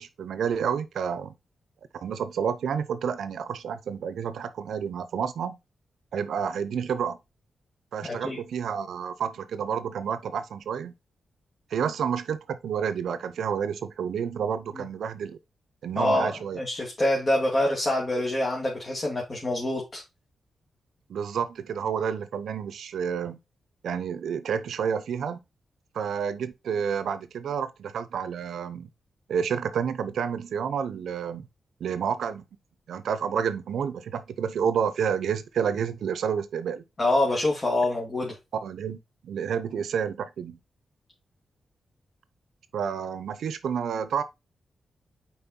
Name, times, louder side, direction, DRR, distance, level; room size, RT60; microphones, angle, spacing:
voice 1, 0.0-1.3 1.9-5.6 6.1-7.2 7.9-10.9 11.7-15.4 15.8-16.6 21.1-23.4 23.8-25.4 25.9-28.9 29.3-31.5 31.8-32.4 32.9-36.8 38.6-40.6 42.7-44.2, right 7 dB, 85° right, 0.7 m, -29 dB
voice 2, 8.0-8.4 14.7-14.8 15.9-20.0 37.0-38.4, left 1 dB, 40° left, 2.3 m, -26 dB
5.3 x 4.5 x 4.4 m
cardioid pair, 70°, 0 cm